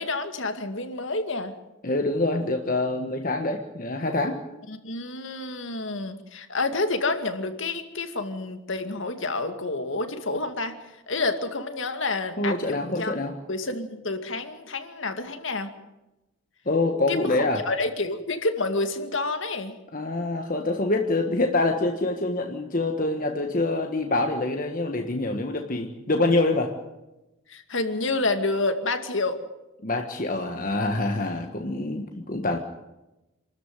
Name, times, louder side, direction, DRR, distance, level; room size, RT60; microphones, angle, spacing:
voice 1, 0.0-1.5 4.7-13.1 13.5-15.7 17.1-19.7 27.5-29.4, left 3 dB, 65° left, 7 dB, 2.3 m, -29 dB
voice 2, 1.8-4.4 12.4-13.3 16.6-17.6 19.9-26.7 29.8-32.6, left 2 dB, 40° left, 4 dB, 1.6 m, -25 dB
27.5 x 13.5 x 9.3 m, 0.98 s
head